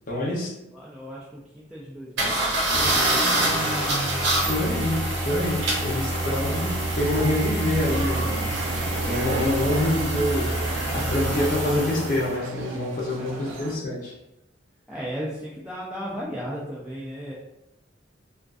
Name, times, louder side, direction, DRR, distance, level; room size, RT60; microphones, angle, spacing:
voice 1, 0.1-0.5 4.5-8.3 8.8-14.1, left 1 dB, 45° left, -4 dB, 0.6 m, -26 dB
voice 2, 0.7-4.2 13.2-13.7 14.9-17.3, equal, 5° right, -7 dB, 0.3 m, -37 dB
sound 1, 2.2-12.3, right 1 dB, 70° right, 0.8 m, -25 dB
sound 2, 7.8-13.8, right 3 dB, 90° right, 0.4 m, -36 dB
2.4 x 2.3 x 2.3 m, 0.89 s
head